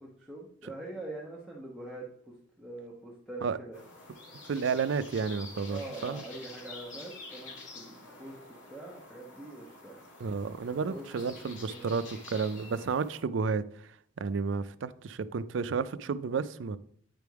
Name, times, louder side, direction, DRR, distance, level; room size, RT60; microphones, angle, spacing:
voice 1, 0.0-2.1 2.6-3.8 5.7-8.4 8.7-10.0 10.9-11.9, right 2 dB, ahead, -5 dB, 1.0 m, -44 dB
sound 1, 3.7-13.2, left 3 dB, 70° left, 2.0 m, -48 dB
voice 2, 4.5-6.2 10.2-13.6 14.2-16.8, right 5 dB, 70° right, 15 dB, 0.4 m, -31 dB
9.1 x 3.5 x 4.6 m, 0.63 s
head